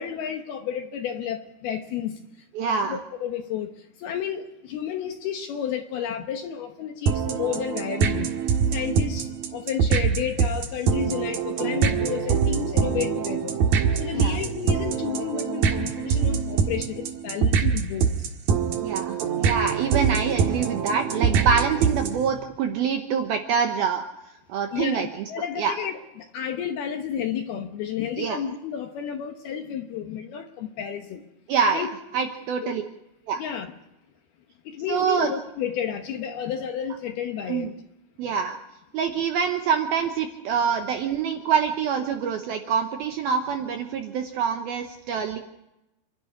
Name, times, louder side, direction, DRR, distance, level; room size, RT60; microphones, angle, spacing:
voice 1, 0.0-2.2 2.6-8.3 8.7-13.6 13.9-18.3 24.7-31.2 31.7-31.9 32.6-32.8 33.4-33.7 34.7-37.7, left 8 dB, 70° left, 5 dB, 2.5 m, -31 dB
voice 2, 2.6-3.0 14.1-14.4 18.8-24.0 24.5-25.1 25.6-25.7 28.2-28.4 31.5-31.9 32.1-32.8 33.3-33.4 34.9-35.3 37.5-37.7 38.2-38.6 38.9-45.4, right 6 dB, 75° right, 5 dB, 2.3 m, -25 dB
sound 1, 7.1-22.3, right 6 dB, 60° right, 2.9 m, -24 dB
28.5 x 11.5 x 9.9 m, 0.91 s
omnidirectional pair, 5.6 m